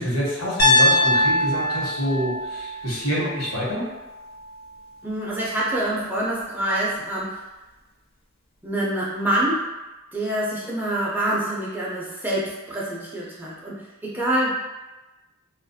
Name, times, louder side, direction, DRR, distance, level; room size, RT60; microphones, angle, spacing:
voice 1, 0.0-3.9, equal, 80° left, -7 dB, 1.1 m, -26 dB
Piano, 0.6-4.7, left 1 dB, 50° left, 0.5 m, -22 dB
voice 2, 5.0-7.5 8.6-9.7 10.1-14.5, right 1 dB, 10° right, -6 dB, 0.3 m, -26 dB
2.4 x 2.2 x 2.6 m, 1.1 s
head